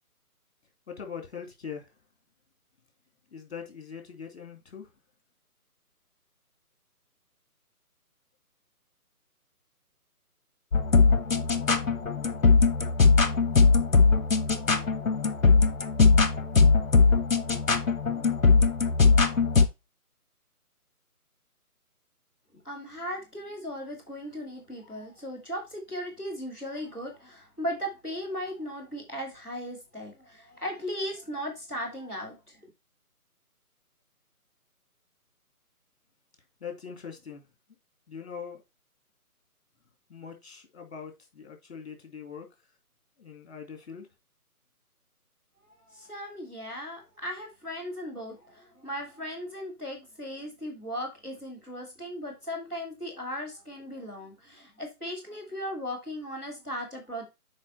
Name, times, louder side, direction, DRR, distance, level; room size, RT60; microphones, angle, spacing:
voice 1, 0.9-1.9 3.3-4.9 36.6-37.4 38.1-38.6 40.1-42.5 43.2-44.1, left 6 dB, 45° left, 2.6 m, -41 dB
sound 1, 10.7-19.7, left 4 dB, 60° left, 1.2 m, -21 dB
voice 2, 22.6-32.3 45.9-57.2, equal, 5° right, 1.0 m, -37 dB
7.3 x 4.8 x 4.2 m
figure-of-eight pair, 150°, 45 cm